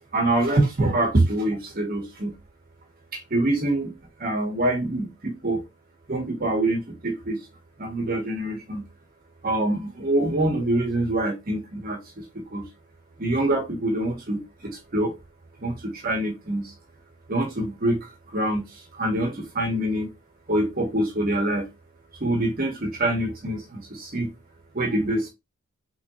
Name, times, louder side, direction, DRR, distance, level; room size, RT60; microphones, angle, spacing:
voice 1, 0.1-2.3 3.1-3.9 4.2-5.6 6.1-7.4 7.8-8.8 9.4-12.6 13.2-15.1 15.6-16.7 17.3-20.1 20.5-21.7 22.2-24.3 24.7-25.3, right 1 dB, 40° right, 0.9 m, -25 dB
3.6 x 3.1 x 2.8 m
head